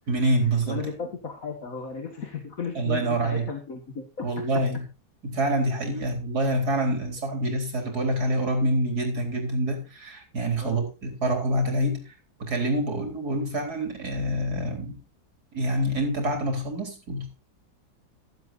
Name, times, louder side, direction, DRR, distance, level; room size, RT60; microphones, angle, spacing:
voice 1, 0.1-0.8 2.8-3.4 4.2-4.8 5.2-12.1 12.4-15.0 15.5-17.3, right 1 dB, 50° right, 4 dB, 4.4 m, -26 dB
voice 2, 0.7-4.3 10.6-10.8, left 5 dB, 45° left, 4 dB, 2.1 m, -35 dB
15.5 x 12.5 x 2.7 m, 0.33 s
omnidirectional pair, 2.1 m